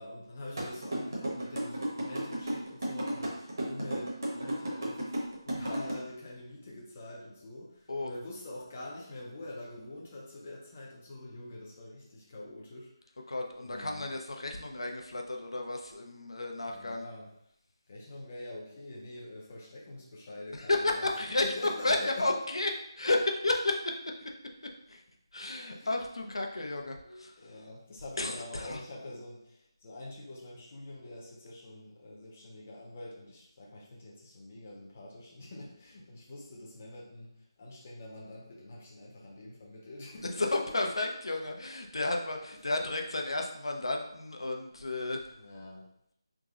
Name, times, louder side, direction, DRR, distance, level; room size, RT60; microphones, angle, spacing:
voice 1, 0.0-13.3 13.6-14.1 16.7-17.3 17.9-22.3 25.4-26.4 27.0-37.3 37.6-40.6 41.0-41.1 45.3-45.9, left 1 dB, 20° left, -4 dB, 0.4 m, -45 dB
sound 1, 0.6-5.9, right 1 dB, 45° right, 1.0 m, -33 dB
voice 2, 13.3-17.0 20.6-21.4 21.8-22.7 23.0-24.0 24.9-25.0 25.3-27.3 28.2-28.8 40.4-45.3, left 2 dB, 80° left, 2 dB, 0.6 m, -32 dB
3.5 x 2.0 x 3.6 m, 0.75 s
figure-of-eight pair, 180°, 3 cm